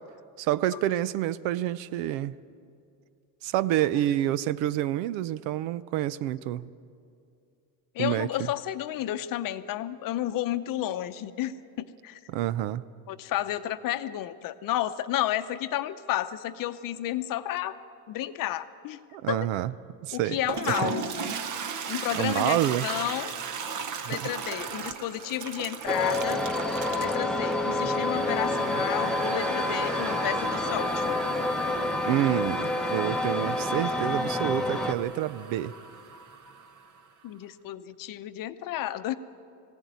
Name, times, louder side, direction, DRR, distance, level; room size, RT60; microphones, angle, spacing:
voice 1, 0.4-2.3 3.4-6.7 8.0-8.3 12.3-12.8 19.1-19.7 20.0-20.4 20.7-20.9 22.1-22.9 24.0-24.2 32.0-35.7, right 13 dB, 70° right, 18 dB, 0.7 m, -28 dB
voice 2, 7.9-12.2 13.1-17.8 18.1-19.0 19.3-19.5 20.1-21.3 21.9-23.3 24.1-26.4 27.0-31.2 37.2-39.1, left 13 dB, 45° left, 11 dB, 0.8 m, -31 dB
Toilet flush, 20.3-37.1, right 6 dB, 40° right, 1.1 m, -37 dB
sound 1, 25.9-34.9, left 2 dB, ahead, 0.9 m, -28 dB
20.0 x 16.5 x 9.3 m, 2.5 s
cardioid pair, 140°, 47 cm